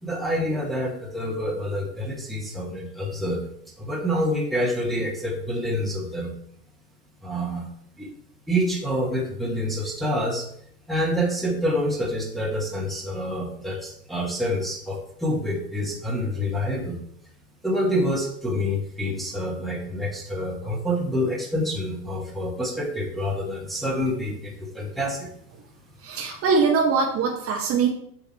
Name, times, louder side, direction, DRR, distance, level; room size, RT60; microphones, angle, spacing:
voice 1, 0.0-3.4 3.8-6.3 7.2-7.6 8.0-8.1 8.5-10.5 10.9-17.0 17.6-25.3, equal, ahead, -2 dB, 1.2 m, -27 dB
voice 2, 26.0-27.9, right 5 dB, 30° right, 1 dB, 0.9 m, -22 dB
8.1 x 2.8 x 4.3 m, 0.68 s
hypercardioid pair, 95°, 48 cm